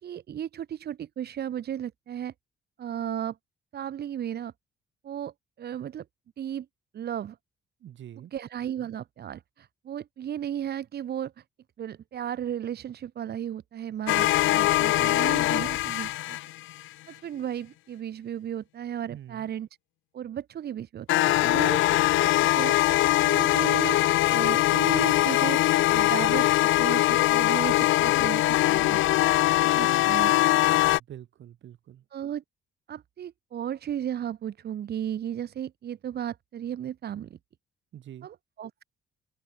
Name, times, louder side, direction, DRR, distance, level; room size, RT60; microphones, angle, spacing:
voice 1, 0.0-2.3 2.8-3.4 3.7-4.5 5.0-6.0 6.4-6.7 6.9-7.4 8.2-11.4 11.8-16.4 17.1-19.7 20.1-23.0 23.2-29.0 29.6-30.6 32.1-32.4 32.9-37.4 38.2-38.8, right 10 dB, 55° right, 0.9 m, -35 dB
voice 2, 7.8-8.3 19.1-19.5 31.0-32.0 37.9-38.3, right 11 dB, 70° right, 7.1 m, -45 dB
sound 1, 14.1-16.8 21.1-31.0, left 17 dB, 80° left, 0.5 m, -22 dB
open air
cardioid pair, 90°, 20 cm